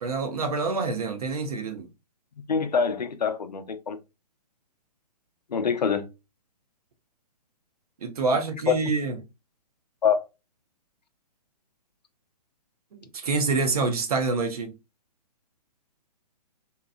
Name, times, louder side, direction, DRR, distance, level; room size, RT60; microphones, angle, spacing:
voice 1, 0.0-1.9 8.0-9.2 12.9-14.7, right 4 dB, 65° right, 0.8 m, -27 dB
voice 2, 2.5-4.0 5.5-6.1 8.7-8.8 10.0-10.2, left 6 dB, 80° left, 0.6 m, -25 dB
2.9 x 2.3 x 2.3 m
figure-of-eight pair, 130°, 21 cm